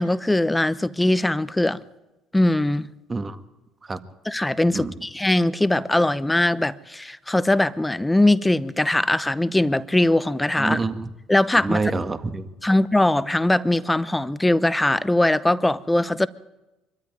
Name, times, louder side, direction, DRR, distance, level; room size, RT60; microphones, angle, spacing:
voice 1, 0.0-1.8 2.3-2.9 4.2-10.8 11.3-11.8 12.6-16.3, left 1 dB, 10° left, 0.8 m, -21 dB
voice 2, 10.6-11.1 11.6-12.7, right 3 dB, 25° right, 1.8 m, -27 dB
24.0 x 13.5 x 9.4 m
hypercardioid pair, 70°, 0 cm